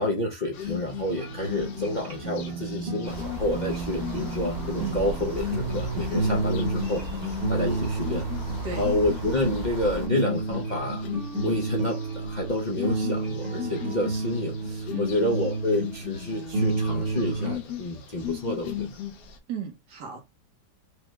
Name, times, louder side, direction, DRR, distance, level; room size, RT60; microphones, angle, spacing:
voice 1, 0.0-8.3 8.8-11.1 11.4-19.0, left 1 dB, 45° left, 0.5 m, -29 dB
sound 1, 0.5-19.4, left 10 dB, 80° left, 1.4 m, -38 dB
sound 2, 1.1-17.5, right 2 dB, 40° right, 1.2 m, -31 dB
sound 3, 3.0-10.1, right 1 dB, 60° right, 2.3 m, -37 dB
voice 2, 19.5-20.2, right 6 dB, 75° right, 1.8 m, -34 dB
4.7 x 2.3 x 3.0 m
omnidirectional pair, 1.8 m